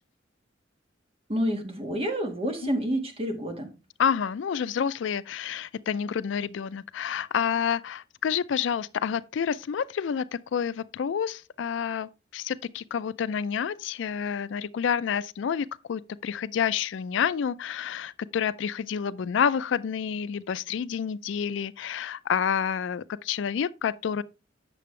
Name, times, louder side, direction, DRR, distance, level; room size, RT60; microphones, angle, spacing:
voice 1, 1.3-3.7, equal, 30° right, 1.5 m, -29 dB
voice 2, 4.0-10.2 10.5-24.2, left 7 dB, 70° left, 0.4 m, -29 dB
8.4 x 6.7 x 3.1 m
head